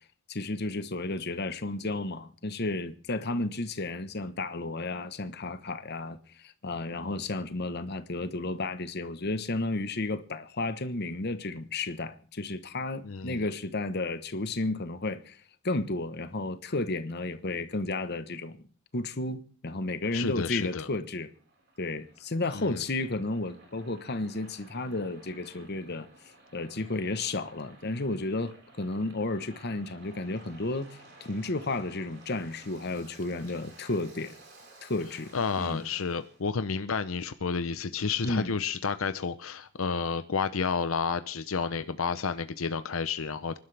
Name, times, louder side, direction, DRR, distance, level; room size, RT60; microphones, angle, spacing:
voice 1, 0.3-15.4 15.6-18.6 18.9-21.3 21.8-26.1 26.5-34.3 34.8-35.3 35.6-35.9 38.2-38.5, left 2 dB, 50° left, 1.1 m, -32 dB
voice 2, 13.0-13.4 20.1-20.9 22.5-22.8 35.3-43.6, left 5 dB, 80° left, 0.7 m, -31 dB
Waves surf, 20.6-36.4, right 2 dB, 55° right, 4.8 m, -55 dB
26.0 x 11.5 x 3.4 m
head